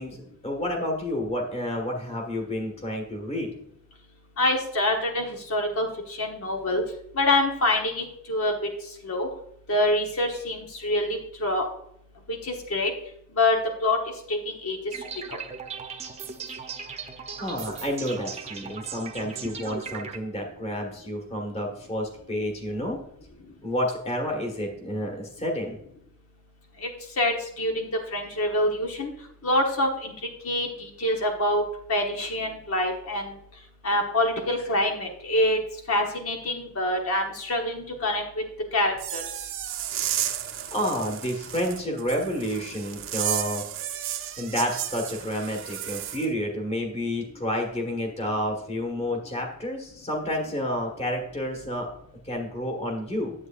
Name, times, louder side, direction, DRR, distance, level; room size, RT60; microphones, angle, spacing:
voice 1, 0.0-3.5 17.4-23.0 23.6-25.8 40.7-43.6 44.4-51.9 52.2-53.3, equal, 30° left, 2 dB, 1.6 m, -30 dB
voice 2, 4.4-5.9 6.2-6.8 7.2-8.5 9.0-9.3 9.7-11.6 12.3-12.9 13.3-14.0 14.3-14.8 26.8-26.9 27.2-29.1 29.4-30.1 30.4-30.7 31.0-31.6 31.9-33.2 33.8-35.6 35.9-38.4 38.7-39.2, left 1 dB, 75° left, 2 dB, 1.2 m, -25 dB
sound 1, 14.9-20.2, right 5 dB, 30° right, 0.8 m, -38 dB
sound 2, 38.9-46.3, right 11 dB, 60° right, 0.7 m, -33 dB
9.7 x 8.2 x 2.5 m, 0.72 s
head